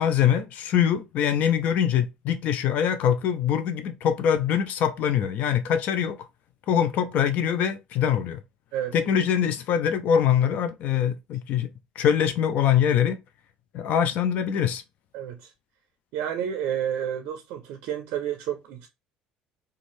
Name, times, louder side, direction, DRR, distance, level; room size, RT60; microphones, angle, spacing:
voice 1, 0.0-6.2 6.7-8.4 8.9-11.7 12.0-13.2 13.7-14.8, left 8 dB, 65° left, 0.5 m, -23 dB
voice 2, 15.1-15.5 16.1-18.9, right 9 dB, 75° right, 0.4 m, -30 dB
2.5 x 2.3 x 3.0 m
supercardioid pair, 90°, 3 cm